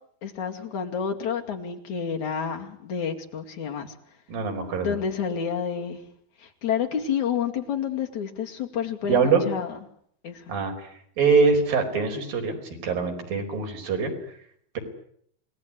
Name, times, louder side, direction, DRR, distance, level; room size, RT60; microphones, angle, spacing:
voice 1, 0.2-3.9 4.8-6.0 6.4-9.8 10.2-10.4, left 7 dB, 55° left, 3 dB, 3.6 m, -29 dB
voice 2, 4.3-4.9 9.1-9.4 10.5-12.6 12.8-14.1, right 5 dB, 70° right, 4 dB, 6.6 m, -23 dB
28.5 x 19.0 x 9.9 m, 0.68 s
omnidirectional pair, 4.2 m